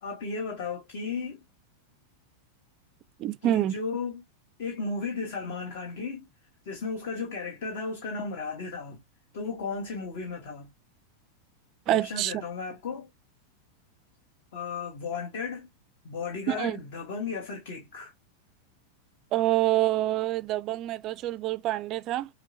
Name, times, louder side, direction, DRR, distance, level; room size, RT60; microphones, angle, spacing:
voice 1, 0.0-1.4 3.4-4.2 4.6-6.3 6.6-9.0 9.3-10.7 11.9-13.1 14.5-15.7 16.0-18.1, left 4 dB, 50° left, 1.2 m, -34 dB
voice 2, 3.2-3.7 11.9-12.3 16.5-16.8 19.3-22.3, right 14 dB, 35° right, 0.3 m, -26 dB
6.0 x 2.1 x 2.6 m
figure-of-eight pair, 90°, 0 cm